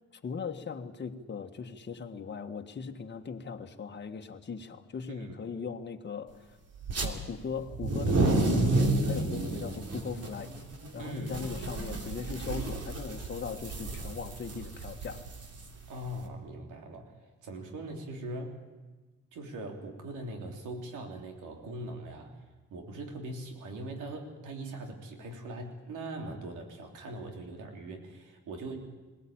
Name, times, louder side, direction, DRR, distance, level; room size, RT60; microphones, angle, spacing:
voice 1, 0.2-6.5 7.0-10.5 10.9-15.2, left 5 dB, 35° left, 4 dB, 1.6 m, -39 dB
sound 1, 6.8-7.1 7.7-16.2, right 2 dB, 55° right, 3.2 m, -31 dB
voice 2, 11.0-11.4 15.9-17.1 17.4-18.6 19.3-22.4 22.7-28.8, right 1 dB, 85° right, 3 dB, 3.4 m, -41 dB
21.5 x 17.5 x 8.8 m, 1.3 s
cardioid pair, 90°, 30 cm